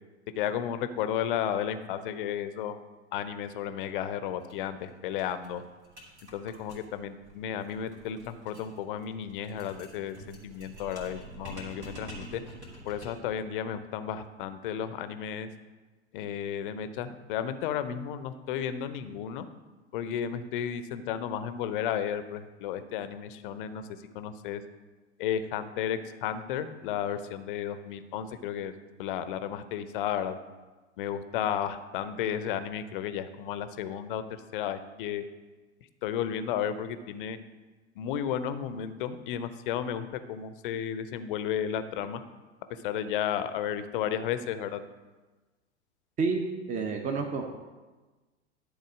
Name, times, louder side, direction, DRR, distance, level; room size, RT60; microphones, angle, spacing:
voice 1, 0.4-2.8 3.1-5.6 6.3-12.4 12.8-15.5 16.1-19.5 19.9-23.8 24.1-24.6 25.2-28.7 29.0-30.4 31.0-34.2 34.5-35.2 36.0-37.4 38.0-42.2 42.8-44.8, left 9 dB, 50° left, 12 dB, 0.7 m, -33 dB
sound 1, 4.4-4.5 4.8-4.9 5.2-13.3, right 1 dB, 80° right, 3.0 m, -47 dB
voice 2, 46.2-47.6, right 4 dB, 20° right, 3 dB, 0.8 m, -30 dB
11.0 x 4.2 x 6.2 m, 1.2 s
figure-of-eight pair, 85°, 34 cm